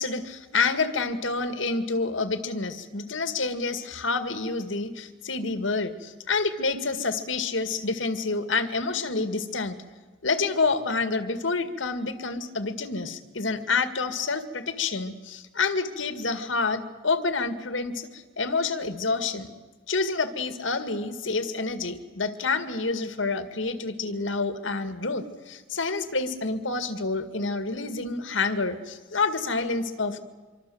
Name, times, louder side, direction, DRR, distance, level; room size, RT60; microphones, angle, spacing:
voice 1, 0.0-9.8 10.2-19.5 19.9-30.2, left 4 dB, 90° left, 10 dB, 2.0 m, -28 dB
25.5 x 25.0 x 7.8 m, 1.3 s
head